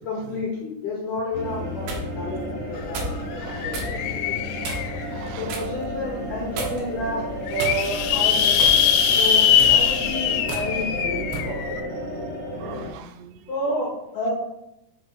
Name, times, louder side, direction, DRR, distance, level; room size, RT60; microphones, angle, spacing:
voice 1, 0.0-4.3 5.4-7.2 7.5-8.8 9.1-11.6 13.5-14.3, left 1 dB, 60° left, -5 dB, 2.3 m, -31 dB
sound 1, 1.3-12.9, equal, 25° left, 2.3 m, -33 dB
sound 2, 1.5-2.1 2.9-3.2 3.7-3.9 4.6-5.0 5.5-5.7 6.6-7.0 7.6-8.1 8.6-8.8 9.5-9.8 10.5-10.7 11.3-11.5, right 2 dB, 65° right, 2.9 m, -32 dB
sound 3, 2.8-2.9 3.1-5.3 5.9-6.0 6.3-6.4 6.6-6.7 7.2-11.8, left 8 dB, 85° left, 3.1 m, -21 dB
voice 2, 2.9-4.0 4.8-5.6 7.7-7.8 8.3-8.5 9.0-9.5 10.6-10.9 11.3-11.4 11.8-13.5, right 9 dB, 85° right, 9 dB, 3.2 m, -45 dB
6.8 x 5.9 x 4.7 m, 0.87 s
omnidirectional pair, 5.9 m